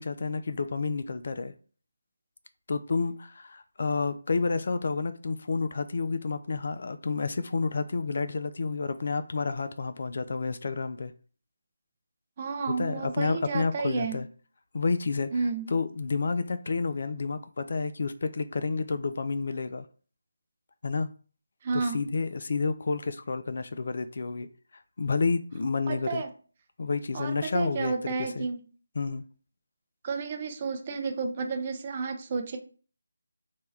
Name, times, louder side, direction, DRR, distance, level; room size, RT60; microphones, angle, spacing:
voice 1, 0.0-1.5 2.7-11.1 12.8-14.3 14.7-15.3 15.7-19.9 20.8-21.1 21.7-24.5 25.0-26.2 26.8-28.5 29.0-29.2, left 4 dB, 50° left, 0.3 m, -30 dB
voice 2, 12.4-14.2 15.3-15.7 21.6-22.0 25.9-26.3 27.1-28.6 30.0-32.6, right 4 dB, 30° right, 0.5 m, -31 dB
2.7 x 2.2 x 3.2 m
figure-of-eight pair, 155°, 0 cm